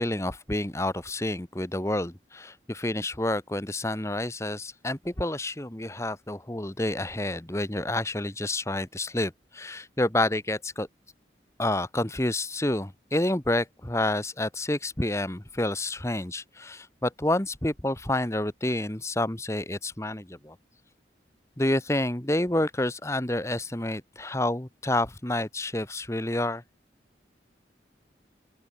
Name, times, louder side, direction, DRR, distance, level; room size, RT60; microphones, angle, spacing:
voice 1, 0.0-10.9 11.6-20.6 21.6-26.6, left 1 dB, 15° left, 1.2 m, -29 dB
open air
head